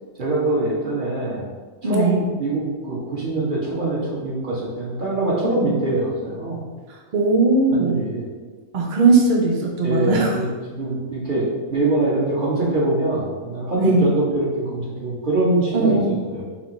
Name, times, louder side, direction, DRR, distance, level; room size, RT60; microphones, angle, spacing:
voice 1, 0.2-1.4 1.8-6.6 7.7-8.2 9.8-16.0 16.3-16.4, right 2 dB, 35° right, -6 dB, 1.3 m, -23 dB
voice 2, 1.8-2.2 7.1-8.0 8.7-10.3 13.8-14.1 15.7-16.2, right 3 dB, 85° right, 0 dB, 0.4 m, -19 dB
5.7 x 2.2 x 4.0 m, 1.4 s
omnidirectional pair, 1.6 m